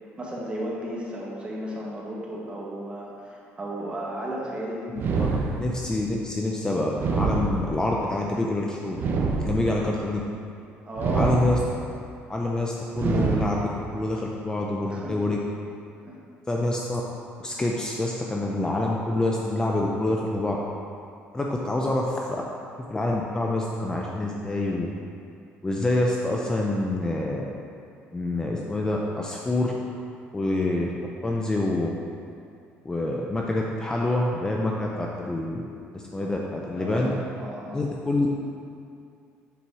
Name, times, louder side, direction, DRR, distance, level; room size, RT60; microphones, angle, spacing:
voice 1, 0.2-5.6 10.8-11.3 14.9-15.1 16.1-16.2 21.7-21.9 36.2-36.3 36.8-37.9, equal, 25° right, -4 dB, 1.5 m, -34 dB
sound 1, 5.0-6.0 6.9-8.0 8.9-10.0 11.0-12.0 12.9-14.0, right 4 dB, 50° right, 0.7 m, -26 dB
voice 2, 5.6-9.0 9.3-10.2 11.1-11.6 12.3-15.4 16.5-17.0 17.4-20.6 21.3-22.4 22.9-24.9 25.6-27.4 28.1-29.7 30.3-30.9 31.2-31.9 32.8-35.7 35.9-37.1 37.7-38.4, left 2 dB, 15° left, -1 dB, 0.6 m, -26 dB
7.0 x 4.5 x 4.8 m, 2.4 s
cardioid pair, 110°, 4 cm